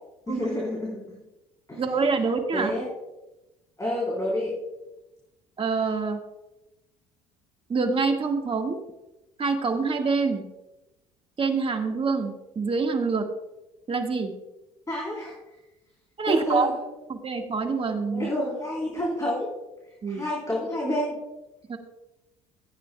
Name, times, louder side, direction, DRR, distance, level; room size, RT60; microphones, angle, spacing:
voice 1, 0.3-1.0 1.7-1.8 2.5-2.9 3.8-4.6 14.9-15.3 16.3-16.7 18.1-19.6 20.1-21.2, left 1 dB, 20° left, -3 dB, 3.9 m, -28 dB
voice 2, 1.8-2.7 5.6-6.2 7.7-8.8 9.4-10.4 11.4-13.3 13.9-14.3 16.2-16.7 17.1-18.3 20.0-20.2 21.7-21.8, right 4 dB, 35° right, 4 dB, 1.8 m, -26 dB
16.0 x 9.4 x 2.3 m, 0.98 s
hypercardioid pair, 70°, 17 cm